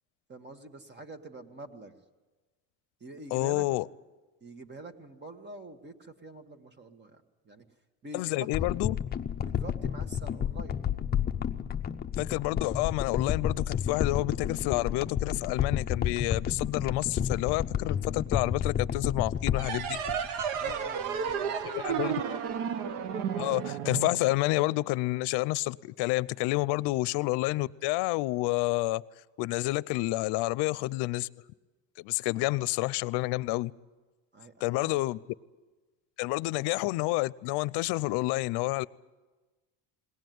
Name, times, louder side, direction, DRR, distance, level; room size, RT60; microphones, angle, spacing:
voice 1, 0.3-2.0 3.0-3.6 4.4-7.7 8.0-8.5 9.4-11.0 20.6-22.5 34.3-35.1, right 2 dB, 25° right, 8 dB, 1.5 m, -46 dB
voice 2, 3.3-3.8 8.1-9.0 12.2-20.0 21.6-22.1 23.3-29.0 29.4-31.3 32.0-33.7 34.6-35.2 36.2-38.9, left 20 dB, 75° left, 20 dB, 0.6 m, -29 dB
sound 1, 8.5-21.0 21.3-21.4, left 8 dB, 25° left, 0.6 m, -31 dB
sound 2, 19.5-24.8, right 8 dB, 75° right, 1.2 m, -33 dB
21.0 x 18.5 x 9.3 m, 1.3 s
cardioid pair, 135°, 41 cm